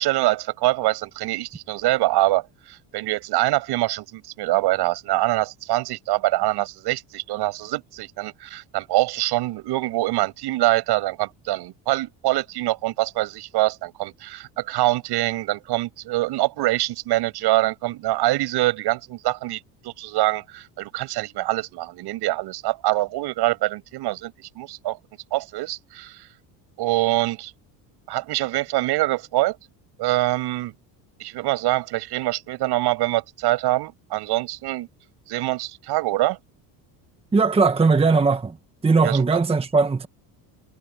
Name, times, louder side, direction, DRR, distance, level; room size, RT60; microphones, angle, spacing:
voice 1, 0.0-25.0 25.3-26.3 26.8-27.5 28.1-29.6 30.0-30.7 31.2-34.9 35.3-36.4 39.0-39.3, right 17 dB, 65° right, 7.4 m, -24 dB
voice 2, 37.3-38.6 38.8-40.1, right 4 dB, 15° right, 1.1 m, -19 dB
cardioid pair, 120°, 42 cm